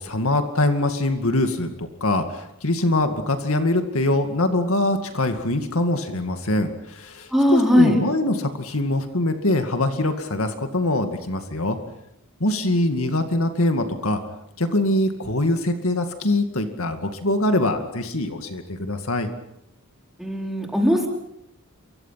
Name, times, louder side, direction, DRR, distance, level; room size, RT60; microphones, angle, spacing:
voice 1, 0.0-11.8 12.4-14.2 14.6-19.3, left 1 dB, 70° left, 7 dB, 2.2 m, -23 dB
voice 2, 7.3-8.0 20.2-21.1, equal, ahead, 0 dB, 4.6 m, -18 dB
28.0 x 24.0 x 5.9 m, 0.80 s
head